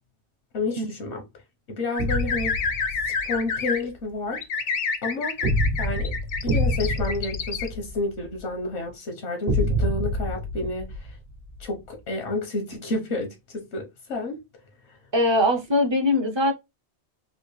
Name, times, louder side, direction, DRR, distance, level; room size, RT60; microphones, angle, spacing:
voice 1, 0.5-1.2 1.7-2.6 3.1-4.4 5.0-5.5 5.8-6.1 6.4-11.1 11.6-14.4 14.9-15.0, left 2 dB, 80° left, 1.1 m, -30 dB
sound 1, 2.0-3.8 4.3-7.7, left 5 dB, 55° left, 0.6 m, -29 dB
sound 2, 2.0-3.4 5.4-8.4 9.5-11.6, equal, 65° right, 1.1 m, -27 dB
voice 2, 15.1-16.5, left 1 dB, 35° right, 0.4 m, -21 dB
3.3 x 2.5 x 3.0 m
omnidirectional pair, 1.1 m